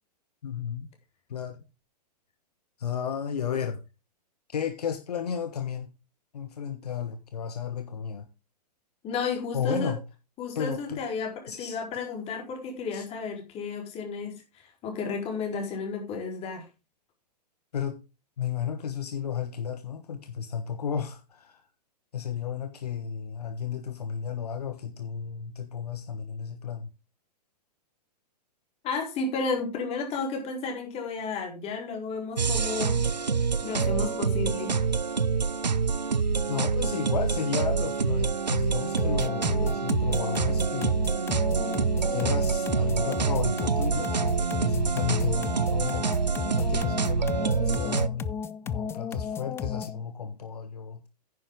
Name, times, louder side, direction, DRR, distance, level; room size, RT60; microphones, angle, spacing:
voice 1, 0.4-0.9 1.3-1.6 2.8-3.8 4.5-5.9 6.3-8.3 9.5-10.0 10.5-11.0 11.5-11.8 12.9-13.0 17.7-18.0 18.4-21.6 22.1-26.9 36.5-41.0 42.1-46.1 46.6-48.4 48.6-51.0, left 8 dB, 70° left, 1.3 m, -33 dB
voice 2, 9.0-9.9 10.4-14.4 14.8-16.7 28.8-33.0 33.6-34.8, left 4 dB, 30° left, 4.2 m, -32 dB
sound 1, 32.4-48.1, right 5 dB, 90° right, 0.6 m, -26 dB
sound 2, 39.0-50.0, left 7 dB, 10° left, 0.4 m, -35 dB
10.0 x 9.6 x 3.8 m
figure-of-eight pair, 110°, 21 cm